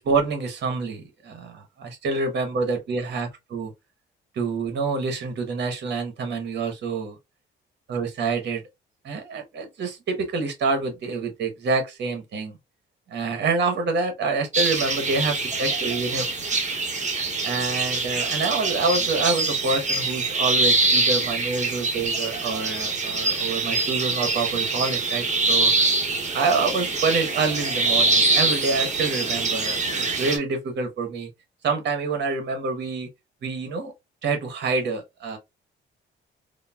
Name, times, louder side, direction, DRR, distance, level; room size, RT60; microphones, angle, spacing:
voice 1, 0.0-3.7 4.4-7.2 7.9-8.6 9.0-12.6 13.1-16.6 17.4-25.7 26.3-31.3 31.6-33.1 33.4-33.9 34.2-35.4, right 4 dB, 60° right, 1.0 m, -27 dB
sound 1, 14.5-30.4, right 3 dB, 35° right, 1.0 m, -24 dB
3.7 x 2.0 x 2.2 m
cardioid pair, 90°, 20 cm